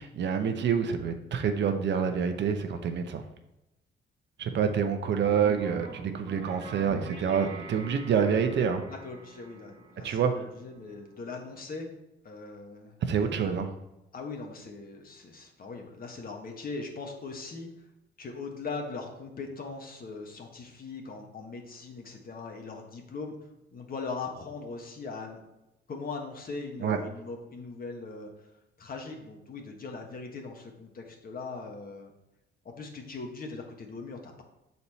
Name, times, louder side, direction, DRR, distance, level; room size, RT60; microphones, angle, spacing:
voice 1, 0.0-3.2 4.4-8.8 10.0-10.3 13.1-13.7 26.8-27.0, right 7 dB, 65° right, 6 dB, 0.8 m, -27 dB
sound 1, 5.1-11.8, right 4 dB, 85° right, 1.5 m, -46 dB
voice 2, 8.9-11.9 12.2-12.9 14.1-17.7 18.2-23.3 23.7-25.5 25.9-28.5 28.8-32.1 32.6-34.4, left 4 dB, 45° left, 3 dB, 1.3 m, -40 dB
6.6 x 4.3 x 4.2 m, 0.93 s
cardioid pair, 90°, 20 cm